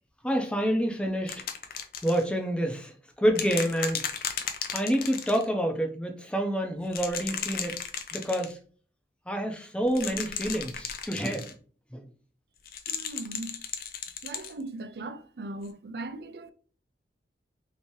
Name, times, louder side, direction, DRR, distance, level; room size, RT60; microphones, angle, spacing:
voice 1, 0.2-1.4 2.0-4.1 4.7-7.8 8.1-8.6 9.3-11.5 11.9-12.1, equal, 5° left, 0.5 m, -28 dB
sound 1, 1.3-2.2 3.3-5.4 6.8-8.5 9.9-11.5 12.7-14.5 15.6-15.7, left 8 dB, 55° left, 0.5 m, -35 dB
voice 2, 12.9-13.6 14.2-16.5, right 2 dB, 65° right, 0.4 m, -39 dB
3.3 x 2.9 x 3.0 m
head